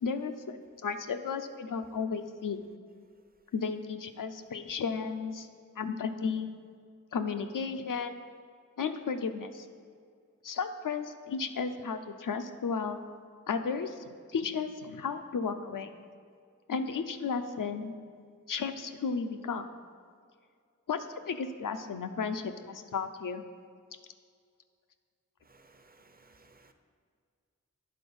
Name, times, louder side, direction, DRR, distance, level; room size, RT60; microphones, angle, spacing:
voice 1, 0.0-2.7 3.5-5.5 5.8-6.5 7.1-8.2 8.8-9.7 10.4-13.0 13.5-15.9 16.7-17.9 18.5-19.7 20.9-23.4, left 5 dB, 80° left, 8 dB, 0.5 m, -34 dB
voice 2, 25.5-26.7, right 3 dB, 30° right, 7 dB, 0.6 m, -60 dB
9.6 x 3.8 x 5.3 m, 2.2 s
wide cardioid pair, 40°, 32 cm